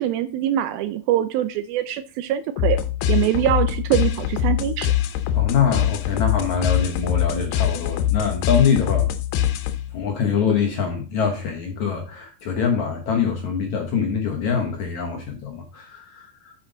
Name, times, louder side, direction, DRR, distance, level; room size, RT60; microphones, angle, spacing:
voice 1, 0.0-2.8 3.1-4.9, right 12 dB, 80° right, 2.2 m, -23 dB
sound 1, 2.6-10.0, left 11 dB, 85° left, 2.9 m, -23 dB
voice 2, 5.3-9.1 9.9-16.5, left 6 dB, 65° left, 1.9 m, -24 dB
7.9 x 7.2 x 3.8 m
omnidirectional pair, 4.6 m